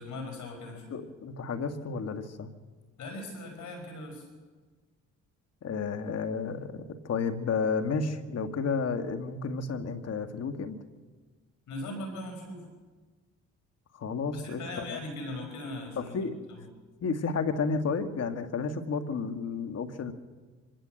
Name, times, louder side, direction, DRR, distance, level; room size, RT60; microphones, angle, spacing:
voice 1, 0.0-0.8 3.0-4.3 11.7-12.7 14.3-16.6, left 2 dB, 75° left, 4 dB, 5.5 m, -39 dB
voice 2, 0.9-2.5 5.6-10.8 13.9-15.0 16.0-16.4 17.0-20.1, left 5 dB, 55° left, 7 dB, 2.0 m, -32 dB
25.0 x 17.0 x 7.9 m, 1.4 s
cardioid pair, 90°, 30 cm